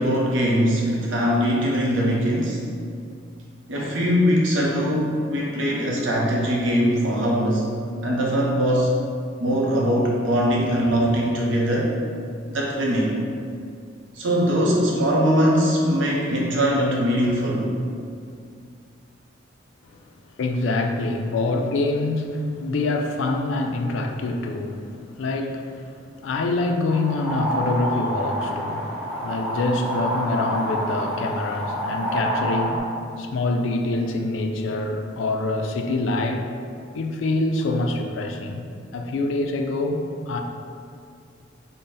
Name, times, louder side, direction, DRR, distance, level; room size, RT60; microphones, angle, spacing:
voice 1, 0.0-2.6 3.7-7.7 8.0-8.9 9.4-11.9 12.5-13.1 14.1-17.7, equal, 85° right, -3 dB, 0.7 m, -21 dB
voice 2, 20.4-28.9 29.2-32.9 33.2-36.5 36.9-38.6 38.9-40.4, left 2 dB, 85° left, 4 dB, 0.4 m, -25 dB
sound 1, 26.9-32.8, equal, ahead, 0.8 m, -28 dB
3.8 x 2.1 x 3.9 m, 2.3 s
head